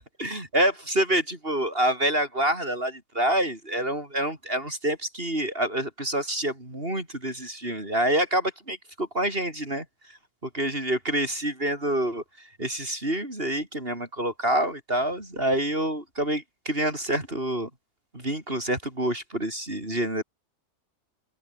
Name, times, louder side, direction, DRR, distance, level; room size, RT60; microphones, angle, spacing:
voice 1, 0.0-9.8 10.4-12.2 12.6-17.7 18.1-20.2, right 1 dB, 35° right, 6.4 m, -27 dB
omnidirectional pair, 1.7 m